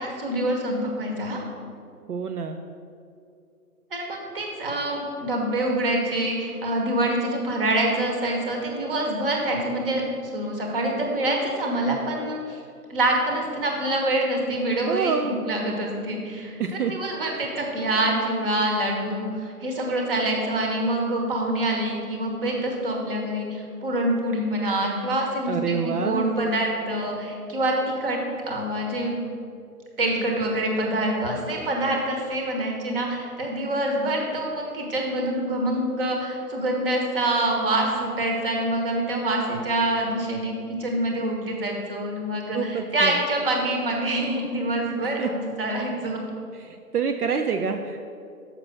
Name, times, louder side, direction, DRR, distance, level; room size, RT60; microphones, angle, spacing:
voice 1, 0.0-1.4 3.9-12.6 12.9-28.2 28.5-29.2 30.0-40.5 40.8-46.2, right 1 dB, 35° right, 0 dB, 1.5 m, -26 dB
voice 2, 2.1-2.6 14.9-15.3 16.6-16.9 25.5-26.4 42.5-43.2 45.0-45.3 46.5-48.1, right 6 dB, 75° right, 5 dB, 0.6 m, -27 dB
6.6 x 5.9 x 6.2 m, 2.4 s
figure-of-eight pair, 145°, 47 cm